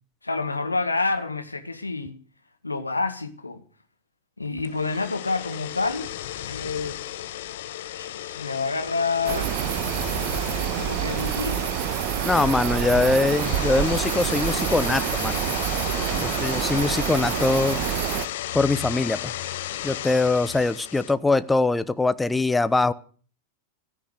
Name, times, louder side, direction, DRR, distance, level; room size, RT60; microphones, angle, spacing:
voice 1, 0.2-2.1 2.6-3.6 4.4-6.1 6.5-7.0 7.9-9.5 10.8-11.8, left 3 dB, 80° left, 1.8 m, -28 dB
sound 1, 4.6-21.1, left 13 dB, 55° left, 1.2 m, -34 dB
sound 2, 9.3-18.3, right 12 dB, 45° right, 1.3 m, -27 dB
voice 2, 12.2-15.4 16.1-17.8 18.5-19.3 19.8-22.9, left 3 dB, 10° left, 0.9 m, -22 dB
16.0 x 13.5 x 6.6 m
figure-of-eight pair, 90°, 0 cm